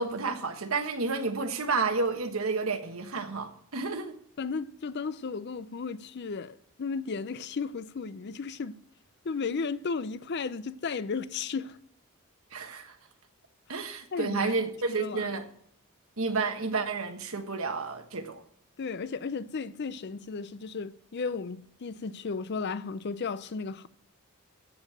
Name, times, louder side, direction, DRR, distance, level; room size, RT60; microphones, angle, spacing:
voice 1, 0.0-4.2 12.5-12.9 13.7-15.4 16.2-18.4, right 4 dB, 65° right, 1.3 m, -30 dB
voice 2, 4.4-8.7 9.2-11.8 14.1-14.6 15.0-15.4 18.8-23.9, left 4 dB, 50° left, 0.5 m, -34 dB
14.0 x 5.3 x 7.4 m
head